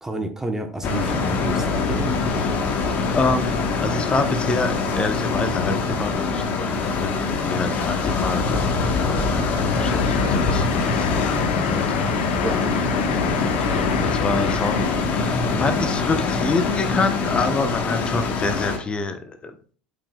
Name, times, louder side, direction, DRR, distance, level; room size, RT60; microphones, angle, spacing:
voice 1, 0.0-2.2 10.3-10.5 12.4-12.6, right 2 dB, 10° right, 5 dB, 1.0 m, -30 dB
sound 1, 0.8-18.8, left 4 dB, 40° left, 1.3 m, -23 dB
voice 2, 3.1-9.5 9.8-12.8 13.3-19.6, left 4 dB, 25° left, 8 dB, 0.9 m, -27 dB
sound 2, 9.7-15.2, left 10 dB, 70° left, 0.3 m, -31 dB
12.0 x 5.2 x 2.3 m, 0.43 s
figure-of-eight pair, 70°, 4 cm